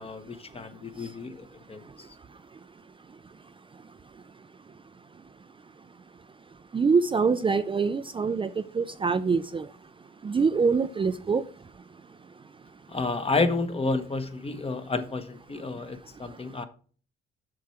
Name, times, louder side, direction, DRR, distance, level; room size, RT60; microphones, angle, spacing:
voice 1, 0.0-1.8 12.9-16.6, left 3 dB, 30° left, 1.1 m, -30 dB
voice 2, 6.7-8.5 8.8-9.7 10.2-11.4, right 5 dB, 25° right, 0.5 m, -24 dB
7.5 x 6.1 x 4.4 m
cardioid pair, 90°, 20 cm